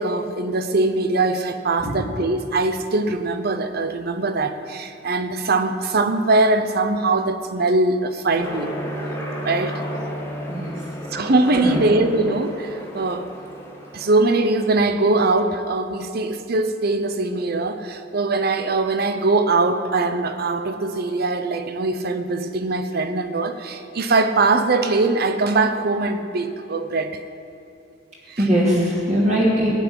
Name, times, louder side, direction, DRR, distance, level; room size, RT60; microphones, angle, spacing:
voice 1, 0.0-8.7 9.4-9.8 11.1-13.3 13.9-27.2 28.3-28.4, right 3 dB, 55° right, 9 dB, 0.8 m, -21 dB
Aircraft, 8.4-14.8, equal, 10° left, 2.0 m, -33 dB
voice 2, 10.5-10.8 11.5-11.8 28.4-29.8, equal, 35° right, -5 dB, 2.7 m, -21 dB
17.0 x 6.0 x 9.7 m, 2.5 s
head